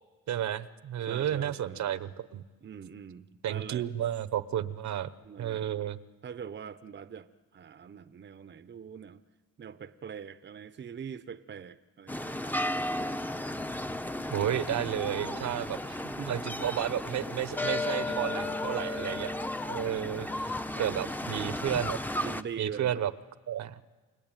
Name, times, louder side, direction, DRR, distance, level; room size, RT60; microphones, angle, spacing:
voice 1, 0.3-2.4 3.4-5.1 5.4-6.0 14.3-16.0 16.3-19.3 19.7-22.0 22.6-23.1 23.5-23.8, right 11 dB, 65° right, 14 dB, 1.1 m, -32 dB
voice 2, 1.0-1.9 2.6-3.9 5.2-5.7 6.2-9.2 9.6-13.2 15.3-15.6 16.0-16.3 18.1-18.7 20.7-21.1 22.2-23.0, right 7 dB, 35° right, 12 dB, 0.9 m, -43 dB
sound 1, 12.1-22.4, left 1 dB, 5° left, 0.9 m, -34 dB
28.5 x 22.0 x 9.1 m, 1.3 s
cardioid pair, 90°, 30 cm